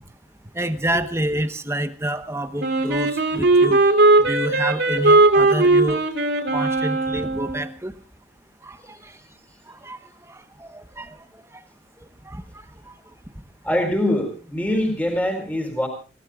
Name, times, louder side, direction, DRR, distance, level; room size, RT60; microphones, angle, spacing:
voice 1, 0.5-3.8 4.2-6.0 6.5-7.9 8.6-9.2 9.7-10.0 10.3-11.2 12.2-12.4, right 1 dB, 15° right, 9 dB, 1.1 m, -28 dB
Wind instrument woodwind instrument, 2.6-7.7, right 2 dB, 75° right, 3.2 m, -18 dB
voice 2, 13.6-15.9, left 1 dB, 10° left, 3 dB, 4.4 m, -23 dB
29.5 x 17.0 x 2.4 m, 0.36 s
head